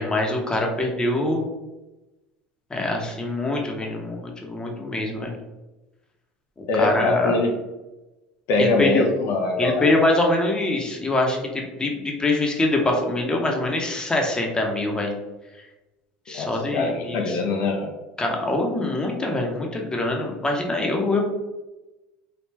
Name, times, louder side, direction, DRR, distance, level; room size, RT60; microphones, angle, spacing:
voice 1, 0.0-1.5 2.7-5.4 6.8-7.4 8.6-9.1 9.6-15.1 16.3-17.4 18.2-21.2, left 2 dB, 15° left, 1 dB, 0.9 m, -24 dB
voice 2, 6.7-7.5 8.5-9.9 16.3-17.9, left 2 dB, 65° left, 2 dB, 0.6 m, -23 dB
3.3 x 2.4 x 3.2 m, 1.1 s
hypercardioid pair, 80°, 5 cm